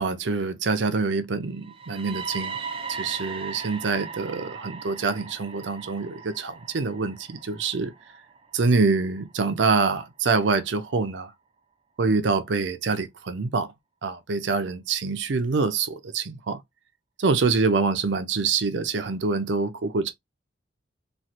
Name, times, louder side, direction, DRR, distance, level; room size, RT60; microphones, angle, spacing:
voice 1, 0.0-2.6 2.9-7.9 8.5-11.3 12.0-13.7 14.0-16.6 17.2-20.1, right 4 dB, 75° right, 0.6 m, -25 dB
sound 1, 1.6-9.5, right 5 dB, 30° right, 0.6 m, -38 dB
3.1 x 2.4 x 2.7 m
head